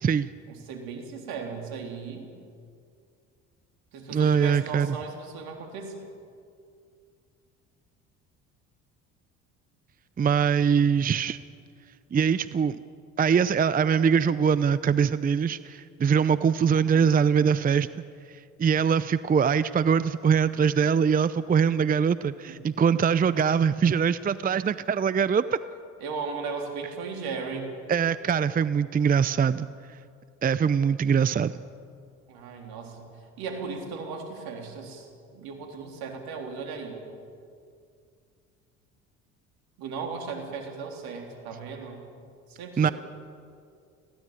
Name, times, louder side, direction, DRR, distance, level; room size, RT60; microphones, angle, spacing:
voice 1, 0.5-2.3 3.9-6.1 16.7-17.1 22.5-22.6 26.0-27.7 32.3-33.1 33.4-37.1 39.8-42.0 42.5-42.9, right 4 dB, 70° right, 3 dB, 3.8 m, -37 dB
voice 2, 4.1-5.0 10.2-11.4 12.1-12.8 13.2-17.9 18.6-25.4 27.9-29.7 30.4-31.6 42.8-42.9, right 7 dB, 20° right, 15 dB, 0.6 m, -23 dB
21.0 x 16.0 x 8.9 m, 2.3 s
hypercardioid pair, 65°, 39 cm